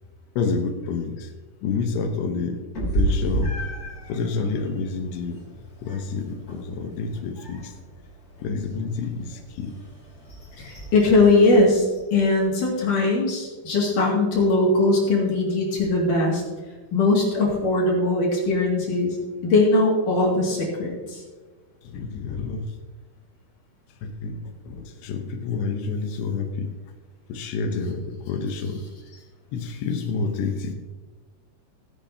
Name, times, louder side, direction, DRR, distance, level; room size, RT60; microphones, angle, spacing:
voice 1, 0.4-1.3 1.6-3.5 4.1-5.4 5.8-7.7 8.4-9.8 21.8-22.8 24.0-26.7 27.3-28.8 29.5-30.7, left 4 dB, 90° left, 4 dB, 3.2 m, -29 dB
Meow, 2.7-12.4, right 1 dB, 25° left, 3.0 m, -33 dB
voice 2, 10.6-11.8 12.1-16.4 16.9-19.2 19.4-21.2, left 2 dB, 55° left, -3 dB, 3.4 m, -20 dB
16.5 x 10.0 x 2.8 m, 1.4 s
omnidirectional pair, 4.8 m